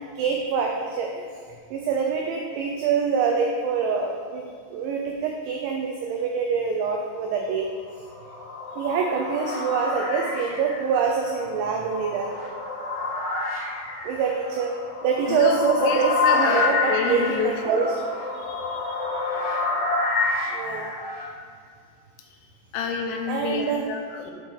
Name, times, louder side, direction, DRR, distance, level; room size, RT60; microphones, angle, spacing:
voice 1, 0.2-1.2 1.7-4.4 4.7-7.7 8.8-12.3 14.0-14.7 15.0-18.1 20.5-20.9 23.3-23.8, right 6 dB, 90° right, 1 dB, 2.6 m, -25 dB
sound 1, 7.9-21.3, left 3 dB, 65° left, 2.9 m, -28 dB
voice 2, 15.3-17.8 18.4-19.2 22.7-24.3, left 5 dB, 85° left, 3 dB, 3.2 m, -29 dB
8.3 x 4.3 x 4.7 m, 2.2 s
omnidirectional pair, 6.0 m